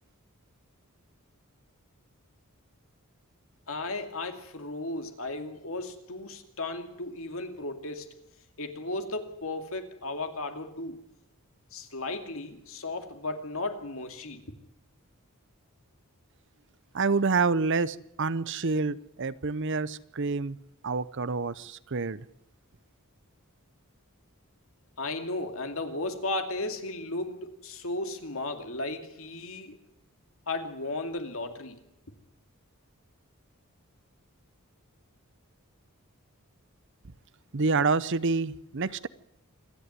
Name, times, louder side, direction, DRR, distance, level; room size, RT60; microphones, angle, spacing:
voice 1, 3.7-8.1 8.6-11.0 11.7-14.4 25.0-29.8 30.5-31.8, left 2 dB, 65° left, 6 dB, 2.5 m, -35 dB
voice 2, 16.9-20.6 20.8-22.2 37.5-39.1, right 4 dB, 55° right, 17 dB, 0.7 m, -27 dB
26.5 x 11.0 x 9.8 m, 0.81 s
head